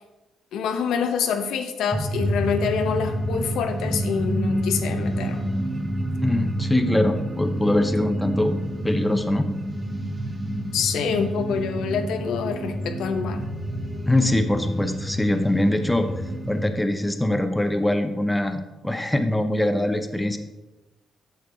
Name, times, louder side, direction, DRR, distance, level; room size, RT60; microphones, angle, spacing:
voice 1, 0.5-5.4 10.7-13.4, left 6 dB, 80° left, 6 dB, 0.8 m, -26 dB
sound 1, 1.9-16.7, equal, 20° right, 1.2 m, -28 dB
voice 2, 6.2-8.6 8.8-9.5 14.1-16.1 16.5-20.4, left 1 dB, 10° left, 7 dB, 0.7 m, -23 dB
8.1 x 6.7 x 3.9 m, 1.1 s
cardioid pair, 90°, 0 cm